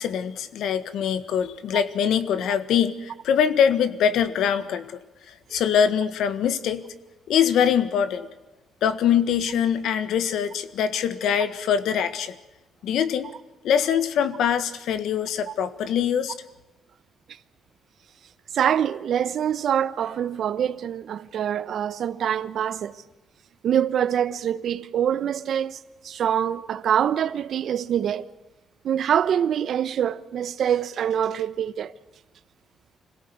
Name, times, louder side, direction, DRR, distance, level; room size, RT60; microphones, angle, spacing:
voice 1, 0.0-5.0 5.3-6.8 7.3-8.3 8.8-12.3 12.8-13.3 13.6-16.3, left 8 dB, 85° left, 1.6 m, -23 dB
voice 2, 18.5-22.9 23.6-28.3 28.8-31.9, right 9 dB, 60° right, 1.0 m, -25 dB
26.5 x 17.5 x 9.5 m
cardioid pair, 155°, 0 cm